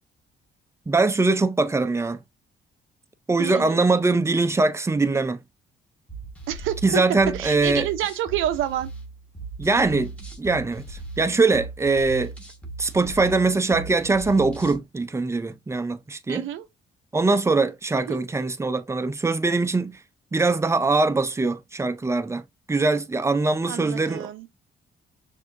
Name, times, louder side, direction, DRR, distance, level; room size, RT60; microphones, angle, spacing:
voice 1, 0.9-2.2 3.3-5.4 6.8-7.9 9.6-12.3 12.8-16.5 17.1-20.0 20.3-24.6, right 3 dB, 15° right, 0.5 m, -22 dB
voice 2, 3.4-3.9 6.5-7.0 7.3-8.9 16.3-16.7 18.0-18.2 23.7-24.5, right 11 dB, 90° right, 0.7 m, -28 dB
sound 1, 6.1-14.8, right 3 dB, 5° left, 1.4 m, -38 dB
5.9 x 2.7 x 2.5 m
cardioid pair, 90°, 20 cm